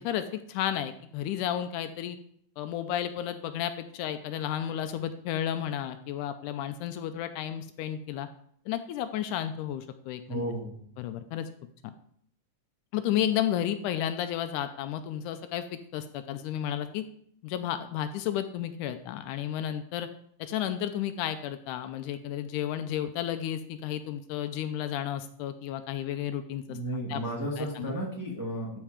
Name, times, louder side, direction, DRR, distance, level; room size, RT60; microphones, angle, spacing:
voice 1, 0.0-2.2 2.6-8.3 8.7-10.4 11.0-11.5 11.8-11.9 12.9-17.0 17.4-20.1 20.4-26.8 27.1-27.2 27.6-27.9, left 10 dB, 80° left, 10 dB, 2.0 m, -32 dB
voice 2, 10.3-10.7 26.7-28.8, right 1 dB, 10° right, -3 dB, 1.0 m, -33 dB
12.0 x 4.4 x 5.0 m, 0.65 s
omnidirectional pair, 3.7 m